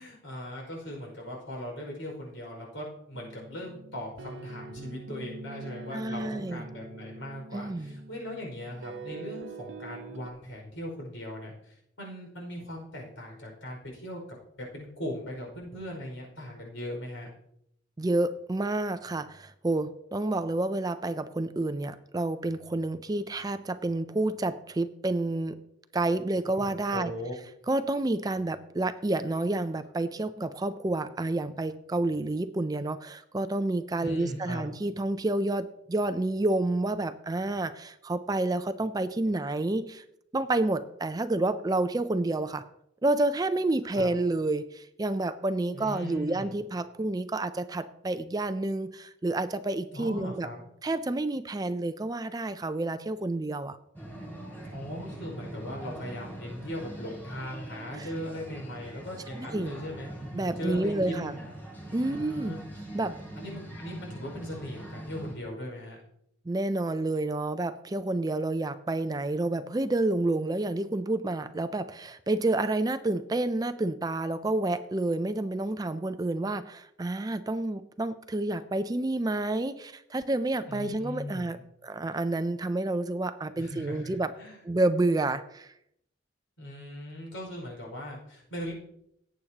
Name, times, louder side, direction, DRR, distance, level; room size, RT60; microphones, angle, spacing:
voice 1, 0.0-14.2 14.6-17.3 26.3-27.3 34.0-34.7 43.9-44.1 45.7-46.6 49.9-50.7 54.7-60.1 60.6-61.5 62.0-62.6 63.3-66.0 80.6-81.6 83.5-84.6 86.6-88.7, equal, 75° left, 0 dB, 5.2 m, -39 dB
sound 1, 3.1-10.3, right 3 dB, 70° right, 0.8 m, -44 dB
voice 2, 5.9-6.6 7.5-8.0 18.0-25.6 25.9-27.1 27.7-40.0 40.3-42.7 43.0-50.5 50.8-53.8 58.0-58.1 59.3-59.7 60.3-61.3 61.9-62.6 62.9-63.2 66.5-81.6 81.8-84.3 84.6-85.7, right 2 dB, 20° right, 11 dB, 0.4 m, -29 dB
sound 2, 53.9-65.3, right 1 dB, 10° left, 3.5 m, -43 dB
18.0 x 8.6 x 2.9 m, 0.76 s
head